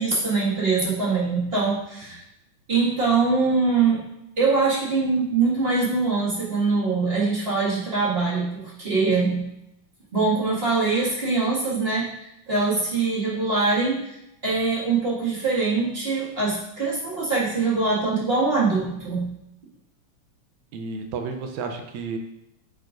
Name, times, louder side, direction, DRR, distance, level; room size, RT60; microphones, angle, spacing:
voice 1, 0.0-2.2 2.7-4.1 4.4-9.5 10.1-14.2 14.4-19.3, right 4 dB, 25° right, -8 dB, 1.6 m, -23 dB
voice 2, 20.7-22.2, right 4 dB, 80° right, 5 dB, 2.0 m, -31 dB
10.5 x 4.6 x 2.5 m, 0.83 s
omnidirectional pair, 3.3 m